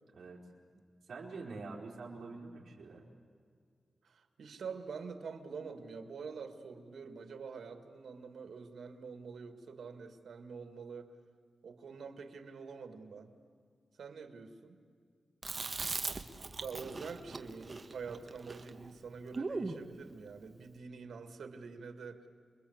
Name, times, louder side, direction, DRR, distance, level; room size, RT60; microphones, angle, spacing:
voice 1, 0.1-0.5 1.0-3.0, right 3 dB, 65° right, -3 dB, 4.2 m, -46 dB
voice 2, 4.0-11.1 11.6-13.3 14.0-14.8 16.6-22.3, right 5 dB, 90° right, 8 dB, 2.3 m, -46 dB
Chewing mastication, 15.4-19.8, right 3 dB, 35° right, 1.5 m, -40 dB
29.0 x 22.5 x 8.2 m, 2.2 s
wide cardioid pair, 120°, 0 cm